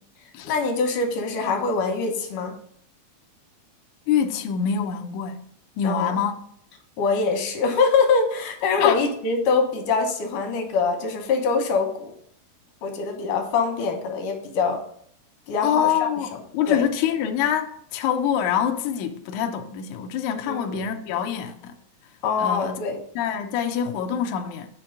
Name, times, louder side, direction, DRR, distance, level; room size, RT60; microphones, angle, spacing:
voice 1, 0.4-2.6 5.8-6.2 7.0-12.1 12.8-14.8 15.5-15.9 16.7-16.9 20.5-20.9 22.2-23.0, left 4 dB, 65° left, 2.4 m, -24 dB
voice 2, 4.1-5.4 5.8-6.3 8.8-9.0 15.6-16.3 16.5-21.7 22.4-22.8 23.1-24.7, left 8 dB, 90° left, 1.6 m, -25 dB
6.7 x 4.5 x 6.5 m
omnidirectional pair, 4.3 m